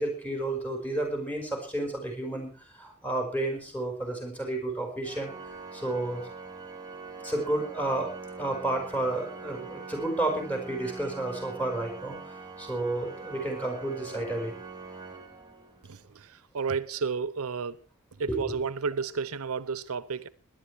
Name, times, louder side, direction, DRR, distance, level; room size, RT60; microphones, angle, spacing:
voice 1, 0.0-5.3 5.7-6.3 7.2-8.1 8.4-12.2 12.6-14.6 18.3-18.5, right 2 dB, 5° left, 5.3 m, -31 dB
Organ, 5.0-16.0, right 4 dB, 15° right, 2.2 m, -43 dB
voice 2, 15.9-16.3 16.5-17.8 18.2-20.3, right 5 dB, 75° right, 0.7 m, -31 dB
18.0 x 11.0 x 4.7 m
head